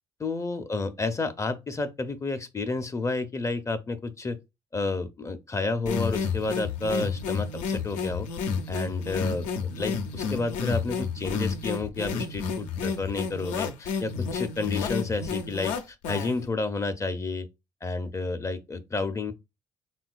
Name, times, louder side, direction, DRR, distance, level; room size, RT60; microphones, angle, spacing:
voice 1, 0.2-4.4 4.7-8.3 8.7-17.5 17.8-19.3, left 3 dB, 25° left, 0.4 m, -30 dB
sound 1, 5.9-16.5, left 5 dB, 85° left, 0.4 m, -31 dB
3.5 x 2.2 x 2.4 m
supercardioid pair, 65°, 12 cm